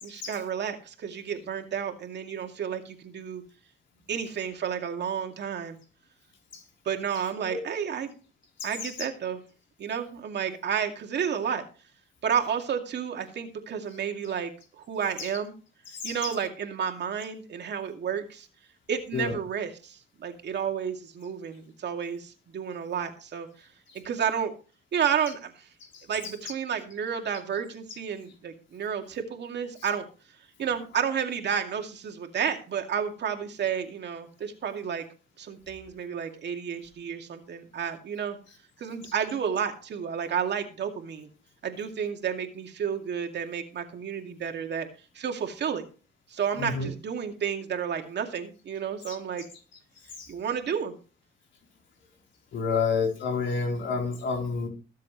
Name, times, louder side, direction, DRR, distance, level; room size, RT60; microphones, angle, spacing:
voice 1, 0.0-3.4 4.1-5.8 6.8-8.1 8.6-9.4 9.8-11.6 12.2-15.6 16.0-18.5 18.9-23.7 24.0-24.5 24.9-25.7 26.1-30.0 30.6-35.0 35.4-38.4 38.8-41.3 41.6-44.9 45.1-45.8 46.3-49.5 50.3-50.9, right 7 dB, 60° right, 4 dB, 2.4 m, -31 dB
voice 2, 8.6-8.9 15.2-15.3 15.9-16.3 19.1-19.3 25.9-26.0 46.6-46.9 49.1-49.2 50.2-50.3 52.5-54.7, left 5 dB, 70° left, 1 dB, 4.0 m, -29 dB
21.5 x 7.4 x 3.2 m, 0.37 s
cardioid pair, 90°, 20 cm